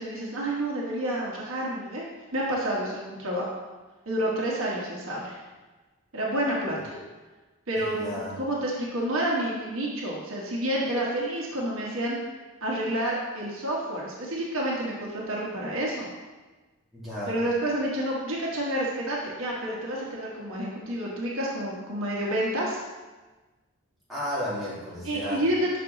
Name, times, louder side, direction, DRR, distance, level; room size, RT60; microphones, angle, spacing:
voice 1, 0.0-2.0 2.3-3.5 4.1-5.4 6.1-7.0 7.7-12.2 12.6-16.1 17.3-22.8 25.0-25.8, right 1 dB, 65° right, -4 dB, 1.2 m, -29 dB
voice 2, 7.7-8.4 16.9-17.4 24.1-25.4, equal, ahead, -11 dB, 2.2 m, -33 dB
6.0 x 5.5 x 3.9 m, 1.2 s
head